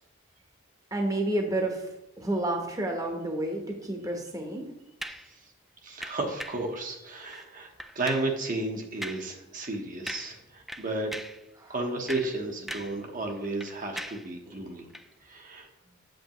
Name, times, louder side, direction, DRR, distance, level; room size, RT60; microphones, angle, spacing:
voice 1, 0.9-1.9 2.2-4.7 11.6-11.7 14.5-14.6, right 1 dB, 15° right, 2 dB, 1.0 m, -30 dB
sound 1, 5.0-5.3 6.0-6.7 7.2-7.5 7.8-8.3 9.0-9.3 9.6-9.8 10.1-10.4 10.7-11.4 11.9-13.0 13.3-14.3 14.9-15.1, equal, ahead, 0.3 m, -40 dB
voice 2, 5.8-11.1 11.7-14.9 15.2-15.7, right 2 dB, 45° right, 2 dB, 1.0 m, -33 dB
8.1 x 7.8 x 3.0 m, 0.87 s
head